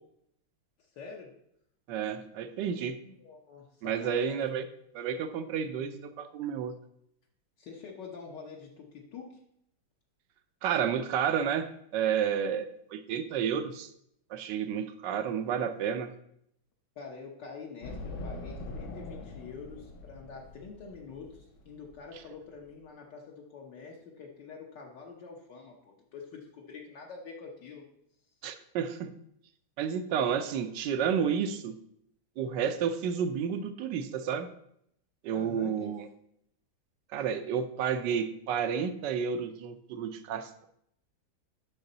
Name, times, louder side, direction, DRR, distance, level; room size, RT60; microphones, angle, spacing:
voice 1, 0.8-1.4 3.0-4.4 7.6-9.4 16.9-27.8 35.3-35.9, left 5 dB, 65° left, -1 dB, 1.6 m, -46 dB
voice 2, 1.9-3.0 3.8-4.6 4.9-6.7 10.6-13.9 14.3-16.1 28.4-29.1 29.8-31.8 32.4-34.5 35.2-36.1 37.1-40.7, right 7 dB, 70° right, 10 dB, 1.2 m, -31 dB
sound 1, 17.8-22.7, left 2 dB, 90° left, 2.0 m, -43 dB
9.8 x 6.3 x 3.9 m, 0.73 s
omnidirectional pair, 2.1 m